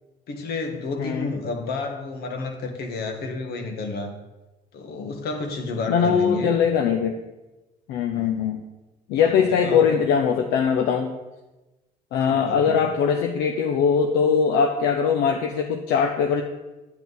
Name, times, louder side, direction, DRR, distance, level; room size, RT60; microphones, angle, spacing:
voice 1, 0.3-4.1 4.7-6.6 8.1-8.4 9.2-9.9 12.1-12.8, left 3 dB, 70° left, 4 dB, 1.5 m, -31 dB
voice 2, 1.0-1.3 5.9-7.2 7.9-8.6 9.1-11.1 12.1-16.4, left 6 dB, 85° left, 4 dB, 0.7 m, -21 dB
9.3 x 8.9 x 4.0 m, 1.1 s
cardioid pair, 110°, 17 cm